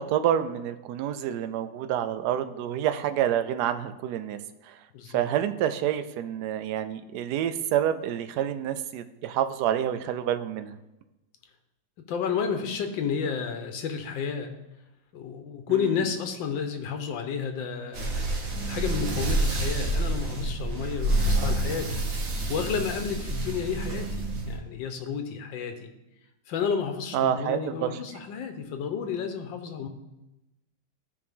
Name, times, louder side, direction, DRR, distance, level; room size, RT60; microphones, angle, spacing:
voice 1, 0.0-4.4 4.7-4.8 5.1-10.7 15.8-16.0 27.1-28.0, right 10 dB, 70° right, 10 dB, 1.1 m, -28 dB
voice 2, 4.9-5.3 12.0-14.5 15.1-18.3 18.7-22.0 22.5-25.9 26.5-29.9, left 6 dB, 85° left, 6 dB, 1.6 m, -31 dB
sound 1, 17.9-24.6, right 1 dB, 85° right, 2.2 m, -28 dB
13.5 x 4.8 x 3.6 m, 0.98 s
omnidirectional pair, 2.0 m